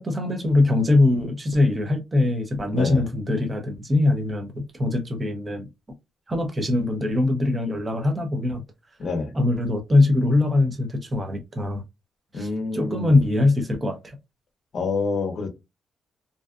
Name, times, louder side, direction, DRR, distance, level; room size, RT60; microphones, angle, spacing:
voice 1, 0.0-5.7 6.3-8.6 9.3-11.8 12.3-14.2, left 2 dB, 20° right, 0.5 m, -22 dB
voice 2, 2.7-3.0 9.0-9.3 12.3-13.2 14.7-15.5, left 4 dB, 50° left, 0.7 m, -27 dB
2.6 x 2.3 x 2.3 m
cardioid pair, 160°, 0 cm